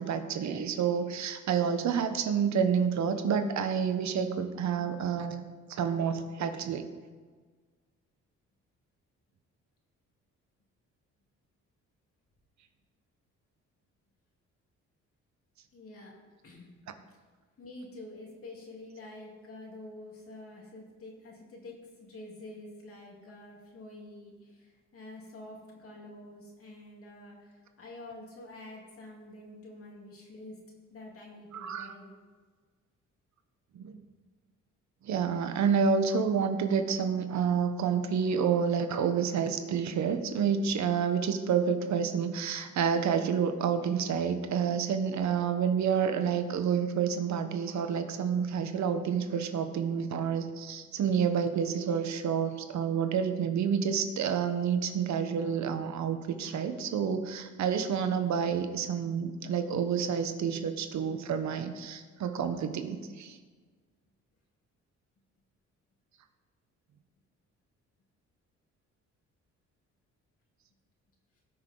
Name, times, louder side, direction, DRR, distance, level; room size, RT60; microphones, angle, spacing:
voice 1, 0.0-6.9 31.5-31.9 33.7-34.0 35.0-63.4, right 7 dB, 65° right, 8 dB, 1.1 m, -29 dB
voice 2, 15.7-16.1 16.4-16.7 17.6-30.6 30.9-32.1, left 2 dB, 50° left, -2 dB, 3.2 m, -47 dB
18.0 x 6.1 x 3.9 m, 1.4 s
cardioid pair, 90°, 30 cm